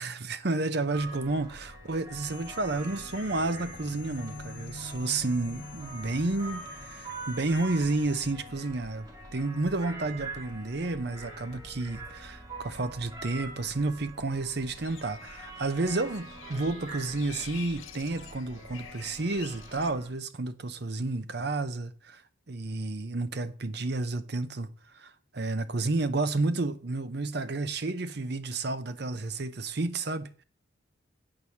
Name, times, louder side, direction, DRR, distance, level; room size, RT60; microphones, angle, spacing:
voice 1, 0.0-22.2 22.5-30.3, right 2 dB, 55° right, 0.7 m, -31 dB
sound 1, 0.9-20.1, right 2 dB, 20° right, 2.2 m, -45 dB
sound 2, 2.2-8.3, left 4 dB, 45° left, 0.4 m, -46 dB
sound 3, 14.7-19.9, left 9 dB, 80° left, 0.9 m, -48 dB
8.8 x 4.8 x 7.0 m
head